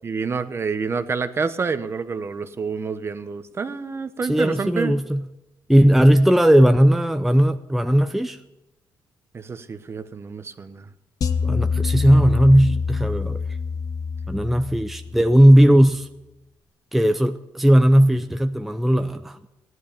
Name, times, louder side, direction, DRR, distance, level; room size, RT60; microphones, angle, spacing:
voice 1, 0.0-5.0 9.3-10.9, right 5 dB, 35° right, 11 dB, 1.1 m, -28 dB
voice 2, 4.3-5.2 5.7-8.4 11.4-13.4 14.3-16.1 16.9-19.4, equal, 5° right, 8 dB, 0.6 m, -17 dB
sound 1, 11.2-15.5, left 5 dB, 55° left, 1.1 m, -26 dB
15.5 x 11.0 x 6.9 m, 0.96 s
cardioid pair, 90°, 7 cm